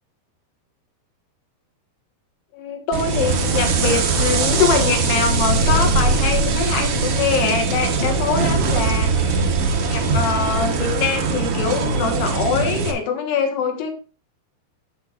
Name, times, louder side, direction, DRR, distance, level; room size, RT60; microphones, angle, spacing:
voice 1, 2.5-9.5 9.8-13.9, left 6 dB, 80° left, 4 dB, 3.6 m, -23 dB
sound 1, 2.9-12.9, right 4 dB, 85° right, 1.2 m, -20 dB
15.5 x 6.0 x 2.5 m, 0.35 s
omnidirectional pair, 4.7 m